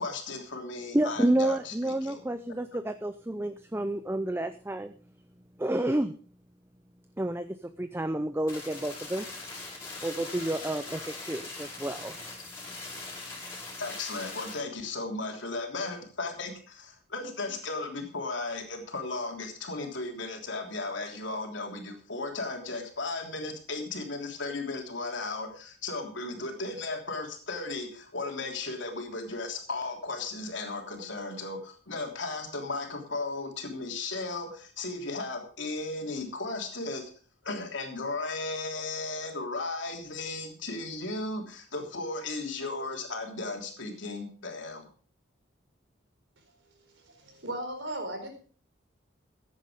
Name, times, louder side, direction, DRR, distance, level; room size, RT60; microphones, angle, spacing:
voice 1, 0.0-2.2 13.8-37.1 37.4-44.9, left 3 dB, 70° left, 2 dB, 3.3 m, -35 dB
voice 2, 0.9-4.9 5.6-6.1 7.2-9.3 10.0-12.2 13.5-13.6, right 1 dB, 10° right, 10 dB, 0.5 m, -30 dB
sound 1, 8.5-14.5, left 3 dB, 15° left, 5.1 m, -41 dB
voice 3, 47.0-48.3, right 1 dB, 75° right, 3 dB, 4.6 m, -36 dB
14.5 x 9.8 x 5.0 m, 0.43 s
head